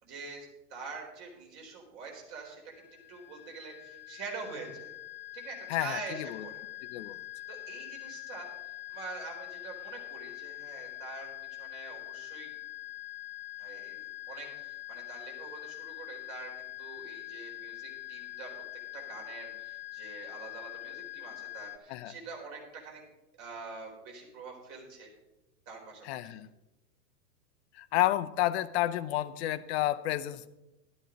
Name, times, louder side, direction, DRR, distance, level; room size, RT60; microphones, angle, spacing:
voice 1, 0.0-2.6 3.1-4.9 5.3-6.5 7.5-8.5 8.9-12.5 13.6-18.5 18.9-23.0 23.4-25.1 25.7-26.4, right 4 dB, 40° right, 0 dB, 4.3 m, -45 dB
sound 1, 2.7-21.8, left 18 dB, 85° left, 1.1 m, -44 dB
voice 2, 5.7-6.4 6.8-7.2 21.9-22.1 26.0-26.5 27.7-30.5, left 14 dB, 40° left, 12 dB, 0.7 m, -31 dB
12.0 x 11.5 x 3.9 m, 0.97 s
hypercardioid pair, 115°, 50 cm